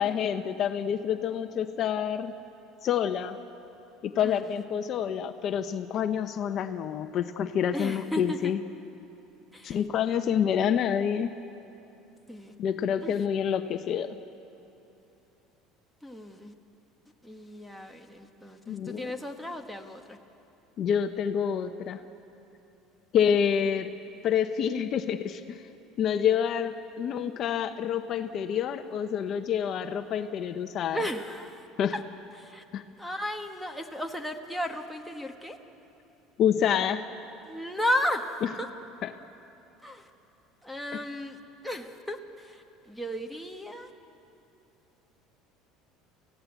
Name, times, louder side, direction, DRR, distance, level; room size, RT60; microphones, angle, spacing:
voice 1, 0.0-2.3 2.8-3.4 4.0-8.6 9.6-11.3 12.6-14.1 18.7-19.1 20.8-22.0 23.1-23.9 24.2-25.6 26.0-31.0 31.8-31.9 32.7-32.8 36.4-37.0 39.0-39.1, left 8 dB, 45° left, 8 dB, 0.9 m, -27 dB
voice 2, 4.2-4.5 7.7-8.5 9.5-9.9 12.3-12.5 13.0-13.2 16.0-16.5 17.2-20.2 30.9-31.7 31.9-32.0 32.3-32.6 33.0-35.6 37.4-38.7 39.8-40.1 40.6-43.9, left 1 dB, ahead, 6 dB, 1.4 m, -34 dB
28.0 x 16.5 x 8.2 m, 2.9 s
cardioid pair, 130°, 0 cm